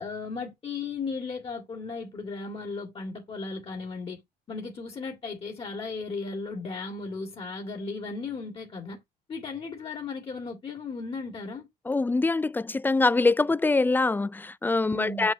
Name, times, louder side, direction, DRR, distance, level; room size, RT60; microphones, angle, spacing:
voice 1, 0.0-4.2 4.5-9.0 9.3-11.7 14.9-15.3, left 4 dB, 35° left, 2.1 m, -36 dB
voice 2, 11.9-15.3, left 3 dB, 10° left, 0.3 m, -24 dB
7.5 x 6.3 x 2.8 m
cardioid pair, 110°, 17 cm